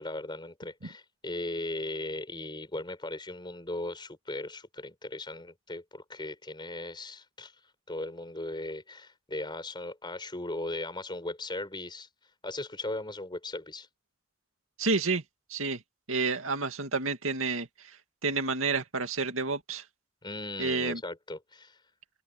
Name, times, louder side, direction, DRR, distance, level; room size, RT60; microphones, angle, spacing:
voice 1, 0.0-7.5 7.9-12.1 12.4-13.9 20.2-21.8, left 2 dB, 20° left, 5.0 m, -38 dB
voice 2, 14.8-15.2 15.5-15.8 16.1-17.9 18.2-19.8 20.6-21.0, right 4 dB, 75° right, 2.4 m, -29 dB
open air
head